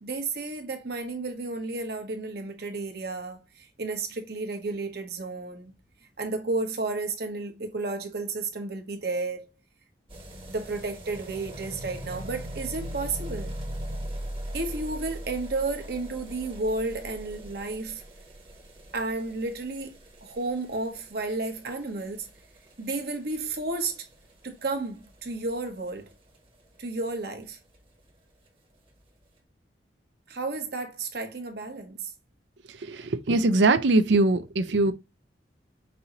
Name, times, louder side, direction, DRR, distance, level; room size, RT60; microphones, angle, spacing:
voice 1, 0.0-5.7 6.2-9.5 10.5-13.6 14.5-18.0 18.9-20.0 20.2-22.3 22.8-24.1 24.4-26.1 26.8-27.6 30.3-32.1, right 3 dB, 60° right, 1.0 m, -32 dB
sound 1, 10.1-26.9 27.1-27.2 27.4-27.5 27.7-27.8 28.1-28.2 28.9-29.0, right 1 dB, 30° right, 1.0 m, -41 dB
voice 2, 32.7-34.9, right 2 dB, 85° right, 0.5 m, -22 dB
5.4 x 2.7 x 2.8 m
head